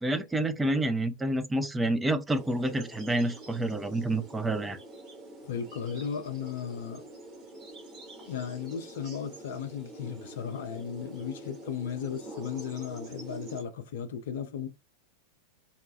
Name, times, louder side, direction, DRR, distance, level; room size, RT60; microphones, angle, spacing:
voice 1, 0.0-4.8, right 1 dB, 10° right, 0.5 m, -28 dB
sound 1, 2.3-13.6, right 1 dB, 35° right, 1.1 m, -46 dB
voice 2, 5.4-7.0 8.3-14.7, left 7 dB, 55° left, 0.5 m, -35 dB
4.1 x 2.2 x 2.7 m
figure-of-eight pair, 90°, 0 cm